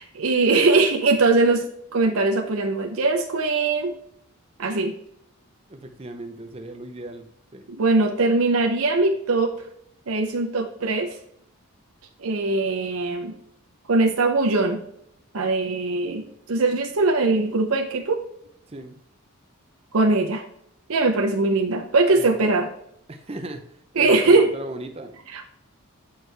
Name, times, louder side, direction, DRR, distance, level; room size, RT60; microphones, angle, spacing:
voice 1, 0.0-1.6 1.9-3.9 4.6-4.9 7.8-9.5 10.1-11.1 12.2-13.3 13.9-14.8 15.3-18.2 19.9-20.4 20.9-22.7 24.0-24.5 25.3-25.5, right 3 dB, 75° right, 4 dB, 0.7 m, -21 dB
voice 2, 5.7-7.3 7.5-7.6 18.7-19.0 22.1-22.5 23.1-23.6 24.0-25.2, right 1 dB, 25° right, 7 dB, 0.6 m, -36 dB
8.2 x 4.6 x 3.2 m, 0.72 s
head